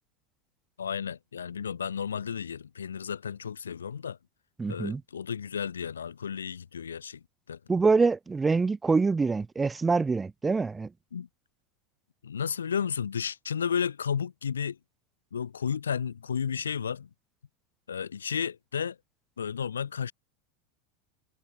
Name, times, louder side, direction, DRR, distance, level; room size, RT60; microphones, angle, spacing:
voice 1, 0.8-4.2 4.7-7.2 7.5-7.6 11.1-11.3 12.2-14.8 15.3-17.1 17.9-19.0 19.4-20.1, left 7 dB, 90° left, 1.0 m, -32 dB
voice 2, 4.6-5.0 7.7-10.9, right 4 dB, 15° right, 2.7 m, -25 dB
hypercardioid pair, 90°, 0 cm